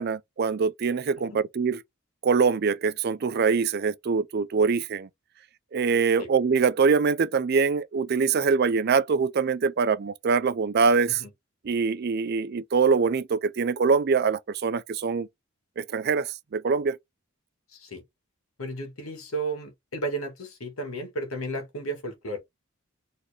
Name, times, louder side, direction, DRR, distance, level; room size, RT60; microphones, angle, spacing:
voice 1, 0.0-1.8 2.2-5.1 5.7-11.2 11.6-15.3 15.8-17.0, right 5 dB, 45° right, 0.4 m, -24 dB
voice 2, 17.7-18.0 18.6-22.4, right 2 dB, 75° left, 2.3 m, -33 dB
4.1 x 3.2 x 3.5 m
head